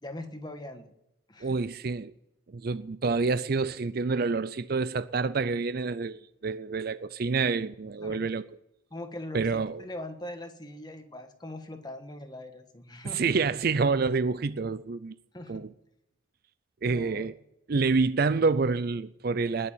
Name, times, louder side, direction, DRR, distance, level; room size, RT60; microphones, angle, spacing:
voice 1, 0.0-0.9 1.3-1.6 8.0-8.3 8.9-13.3 15.3-15.6 16.8-17.3, left 1 dB, 20° left, 1.5 m, -41 dB
voice 2, 1.4-2.1 2.5-8.5 9.3-9.8 13.0-15.1 15.5-15.7 16.8-17.3 17.7-19.7, right 4 dB, 50° right, 0.4 m, -27 dB
20.0 x 7.0 x 8.9 m
head